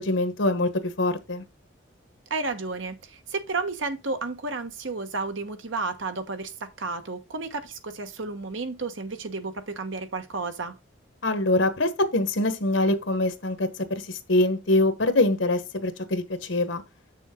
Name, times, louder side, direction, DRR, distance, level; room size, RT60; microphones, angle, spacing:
voice 1, 0.0-1.4 11.2-16.2 16.5-16.8, left 2 dB, 70° left, 1.2 m, -24 dB
voice 2, 2.3-10.7, right 3 dB, 75° right, 1.2 m, -32 dB
7.9 x 6.3 x 3.7 m
head